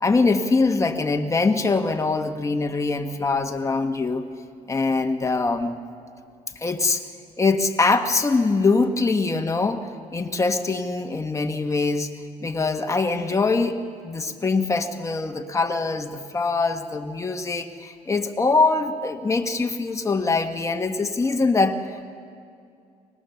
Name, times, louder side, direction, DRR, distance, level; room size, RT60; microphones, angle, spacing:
voice 1, 0.0-4.2 4.7-5.7 6.5-7.0 7.4-12.1 12.4-13.8 14.0-22.0, left 3 dB, 20° left, 5 dB, 1.5 m, -23 dB
24.0 x 19.5 x 7.1 m, 2.3 s
cardioid pair, 100°, 15 cm